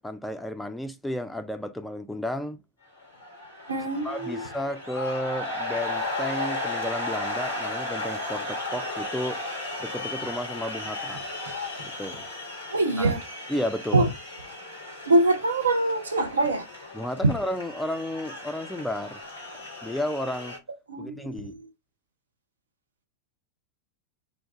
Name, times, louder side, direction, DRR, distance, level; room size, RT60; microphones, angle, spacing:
voice 1, 0.0-2.6 4.0-9.4 9.8-11.2 12.0-12.3 13.0-13.2 13.5-14.1 16.9-19.2 19.8-20.6 21.0-21.5, left 1 dB, 5° left, 0.3 m, -32 dB
sound 1, 3.0-20.6, left 2 dB, 90° right, 1.2 m, -35 dB
voice 2, 3.7-4.4 12.7-13.2 13.9-14.1 15.1-16.7 20.9-21.6, right 2 dB, 75° right, 0.6 m, -24 dB
2.3 x 2.2 x 3.6 m
figure-of-eight pair, 90°, 0 cm